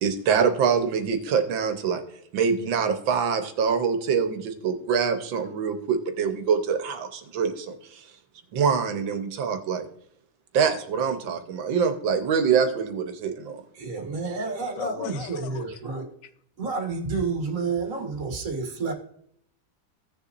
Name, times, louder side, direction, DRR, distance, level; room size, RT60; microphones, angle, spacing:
voice 1, 0.0-2.0 2.3-8.0 8.5-9.9 10.5-13.6 14.3-14.5, right 6 dB, 80° right, 1.7 m, -25 dB
voice 2, 13.8-16.1 16.6-18.9, right 4 dB, 45° right, 1.8 m, -30 dB
voice 3, 14.8-15.7, left 10 dB, 70° left, 1.3 m, -36 dB
16.0 x 6.8 x 2.5 m
omnidirectional pair, 2.1 m